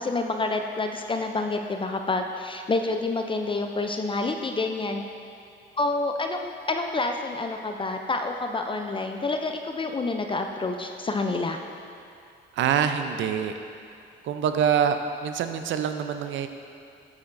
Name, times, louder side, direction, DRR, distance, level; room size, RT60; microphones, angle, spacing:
voice 1, 0.0-5.0 5.8-11.6, left 3 dB, 25° left, 4 dB, 0.4 m, -28 dB
voice 2, 12.5-13.6 14.2-16.5, right 8 dB, 75° right, 8 dB, 0.5 m, -25 dB
8.9 x 8.4 x 2.6 m, 2.5 s
cardioid pair, 90°, 20 cm